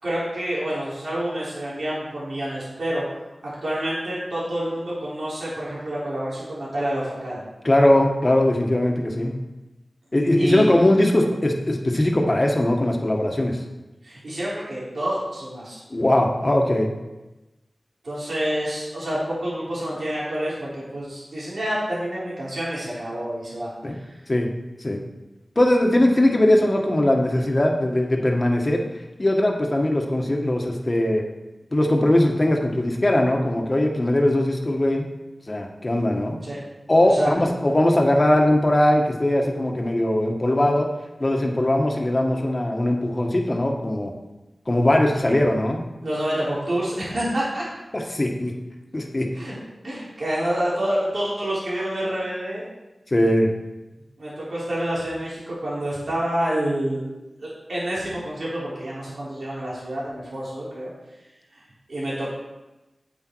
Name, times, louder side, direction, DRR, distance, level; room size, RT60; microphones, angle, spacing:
voice 1, 0.0-3.2 3.6-7.4 10.3-10.7 14.0-15.8 18.0-24.2 36.4-36.6 37.0-37.5 45.2-45.3 46.0-47.6 49.3-49.5 49.8-52.6 54.2-57.0 57.4-60.9 61.5-61.6 61.9-62.3, right 1 dB, 75° right, -8 dB, 3.9 m, -28 dB
voice 2, 7.6-9.4 10.1-13.6 15.9-16.9 23.8-23.9 24.3-24.5 24.8-25.0 25.5-28.8 29.2-31.2 31.7-35.0 35.5-36.4 36.9-40.9 41.2-44.1 44.7-45.8 47.9-48.5 48.9-49.3 53.1-53.5, left 1 dB, 35° left, 2 dB, 1.6 m, -20 dB
8.3 x 8.0 x 4.7 m, 1.0 s
cardioid pair, 45°, 0 cm